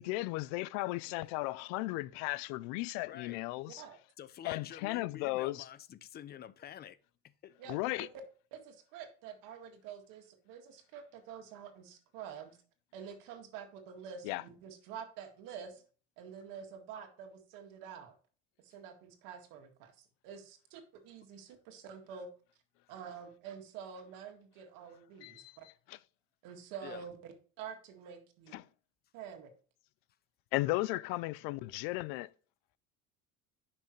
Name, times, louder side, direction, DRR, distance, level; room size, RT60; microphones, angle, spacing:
voice 1, 0.0-3.8 4.4-5.7 7.7-8.1 14.2-14.4 25.2-26.0 28.5-28.7 30.5-32.3, left 19 dB, 85° left, 0.5 m, -35 dB
voice 2, 3.1-3.4 4.2-7.0 7.2-7.6 26.8-27.0, left 10 dB, 30° left, 0.5 m, -48 dB
voice 3, 3.7-4.0 7.6-8.1 8.5-12.6 12.9-15.8 16.2-18.2 18.6-22.3 22.9-25.7 26.4-28.6 29.1-29.5, right 7 dB, 75° right, 2.0 m, -48 dB
10.0 x 6.0 x 3.1 m
cardioid pair, 140°, 33 cm